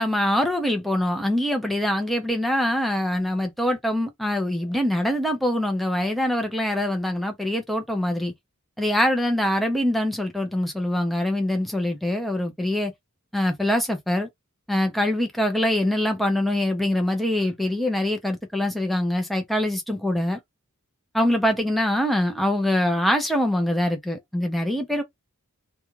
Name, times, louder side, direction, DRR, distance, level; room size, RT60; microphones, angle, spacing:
voice 1, 0.0-8.3 8.8-12.9 13.3-14.3 14.7-20.4 21.1-25.0, left 1 dB, ahead, 0.5 m, -24 dB
2.4 x 2.2 x 3.0 m
head